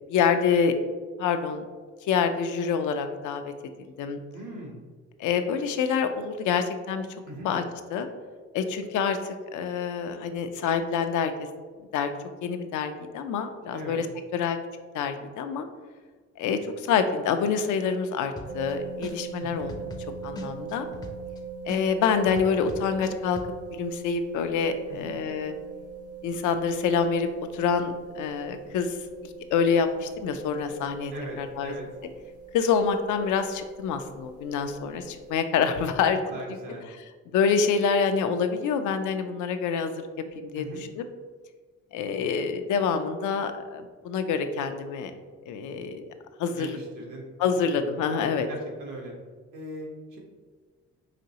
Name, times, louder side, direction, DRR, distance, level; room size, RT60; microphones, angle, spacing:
voice 1, 0.1-0.7 1.2-1.6 2.1-3.5 4.0-4.2 5.2-7.1 7.4-7.6 7.9-8.1 8.5-11.5 11.9-12.1 12.4-14.1 14.3-14.6 14.9-15.7 16.4-19.7 20.2-20.9 21.7-23.4 23.7-25.5 26.2-27.3 27.5-29.0 29.2-31.1 31.4-31.7 32.5-36.2 37.3-40.1 40.3-40.6 41.0-41.1 41.9-45.1 45.5-46.1 46.4-46.8 47.4-48.5, left 6 dB, 80° left, 8 dB, 0.5 m, -26 dB
voice 2, 4.3-4.8 7.3-7.5 13.7-14.0 19.4-19.7 24.9-25.2 31.1-31.9 36.3-36.9 40.5-40.8 46.5-47.2 47.7-48.0 48.5-49.1 49.5-50.2, right 1 dB, 80° right, -1 dB, 1.2 m, -40 dB
sound 1, 18.4-18.7 19.0-21.4 21.7-23.5, left 1 dB, 15° left, 0.5 m, -39 dB
sound 2, 18.5-35.4, right 5 dB, 55° right, 0.9 m, -41 dB
5.0 x 3.0 x 2.8 m, 1.5 s
cardioid pair, 90°, 30 cm